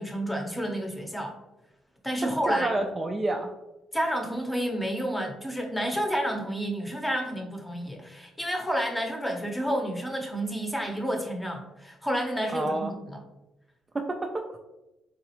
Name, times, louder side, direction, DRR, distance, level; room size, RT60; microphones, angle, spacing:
voice 1, 0.0-1.3 2.0-2.7 3.9-13.2, equal, 10° left, 2 dB, 0.7 m, -30 dB
voice 2, 2.2-3.5 12.5-12.9 13.9-14.6, right 2 dB, 25° right, 2 dB, 0.3 m, -29 dB
3.9 x 2.3 x 2.9 m, 0.96 s
cardioid pair, 100°, 0 cm